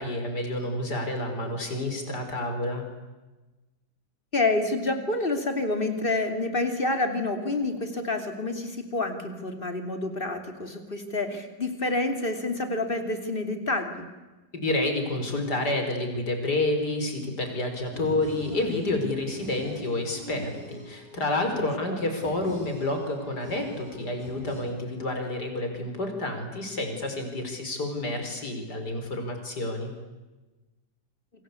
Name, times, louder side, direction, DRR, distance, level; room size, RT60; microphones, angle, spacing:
voice 1, 0.0-2.9 14.5-29.9, left 2 dB, 70° left, 5 dB, 5.4 m, -29 dB
voice 2, 4.3-14.1 21.9-22.0, left 2 dB, 30° left, 6 dB, 3.3 m, -28 dB
sound 1, 17.9-24.6, equal, 40° right, 7.9 m, -43 dB
28.5 x 25.0 x 8.4 m, 1.1 s
omnidirectional pair, 1.8 m